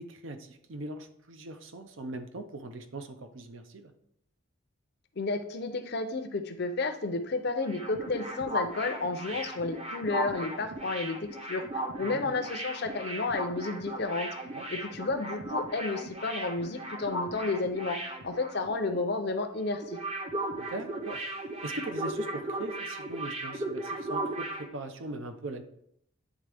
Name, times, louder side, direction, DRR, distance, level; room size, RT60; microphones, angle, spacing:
voice 1, 0.0-3.9 12.0-12.4 14.5-14.8 20.6-21.2 21.6-25.6, right 2 dB, 65° right, 8 dB, 0.6 m, -40 dB
voice 2, 5.2-14.3 14.7-18.0 18.2-20.0, left 3 dB, 50° left, 7 dB, 0.6 m, -32 dB
sound 1, 7.4-19.0 19.2-19.4 19.7-24.7, right 1 dB, 30° right, 0.7 m, -36 dB
9.1 x 3.5 x 3.4 m, 0.72 s
head